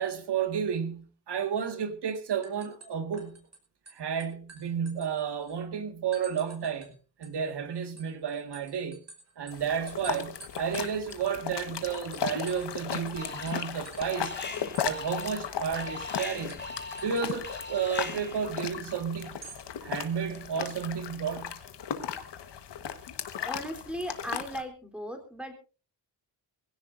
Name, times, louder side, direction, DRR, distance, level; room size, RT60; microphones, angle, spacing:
voice 1, 0.0-3.4 3.9-9.0 9.4-14.4 14.8-16.6 17.0-19.4 19.8-21.6, right 7 dB, 65° right, 2.0 m, -32 dB
sound 1, 1.6-1.9 2.1-3.6 3.9-5.6 6.1-6.9 7.2-12.8 13.1-13.2 13.5-15.0 15.2-15.3 15.6-15.8 16.5-17.3 19.2-19.6, right 4 dB, 35° right, 5.3 m, -50 dB
sound 2, 9.5-24.6, left 8 dB, 65° left, 1.6 m, -37 dB
Alarm, 13.2-13.8 14.0-18.5, left 3 dB, 25° left, 2.9 m, -41 dB
voice 2, 23.4-25.5, equal, ahead, 3.8 m, -37 dB
21.5 x 16.5 x 2.7 m
cardioid pair, 90°, 44 cm